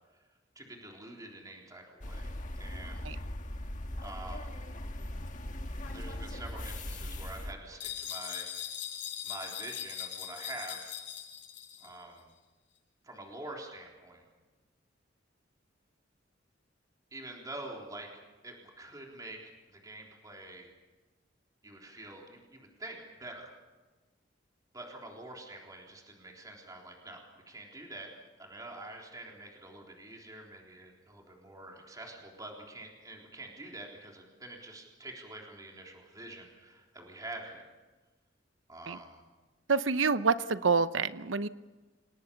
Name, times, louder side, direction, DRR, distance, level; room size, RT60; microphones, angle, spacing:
voice 1, 0.6-3.2 4.0-4.5 5.8-8.5 9.2-11.0 11.8-12.3 13.0-14.2 17.1-18.1 18.4-20.7 21.6-23.5 24.7-28.1 28.4-37.7 38.7-39.2, right 2 dB, 20° right, 0 dB, 3.7 m, -46 dB
sound 1, 2.0-7.5, left 1 dB, 40° left, 1.6 m, -39 dB
sound 2, 7.8-11.9, left 10 dB, 65° left, 7.3 m, -40 dB
voice 2, 39.7-41.5, right 5 dB, 85° right, 13 dB, 0.8 m, -27 dB
28.5 x 18.0 x 7.0 m, 1.2 s
head